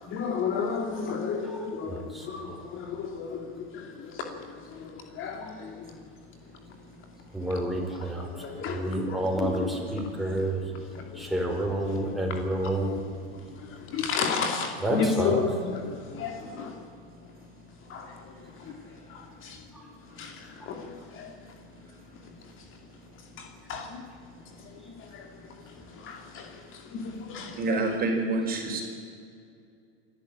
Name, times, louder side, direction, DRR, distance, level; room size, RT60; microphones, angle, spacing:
voice 1, 0.0-6.0 8.0-11.6 11.8-12.4 13.1-16.9 17.8-19.6 20.1-21.6 22.1-22.7 23.4-24.0 24.4-27.8, left 5 dB, 40° left, 2.6 m, -34 dB
voice 2, 1.9-2.3 7.3-8.3 8.7-10.6 11.2-13.0 14.8-15.4 19.7-19.8, right 1 dB, ahead, 4.6 m, -29 dB
voice 3, 27.5-28.8, right 2 dB, 30° right, 4.7 m, -27 dB
26.5 x 12.0 x 9.0 m
supercardioid pair, 120°, 32 cm